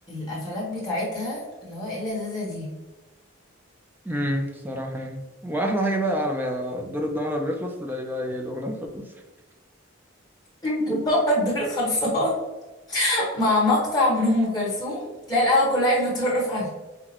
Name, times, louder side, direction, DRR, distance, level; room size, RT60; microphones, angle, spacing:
voice 1, 0.1-2.7 10.6-12.3 12.9-16.7, left 1 dB, 20° left, -7 dB, 1.4 m, -24 dB
voice 2, 4.0-9.1, equal, 10° right, 3 dB, 0.4 m, -28 dB
5.8 x 2.2 x 2.9 m, 1.2 s
head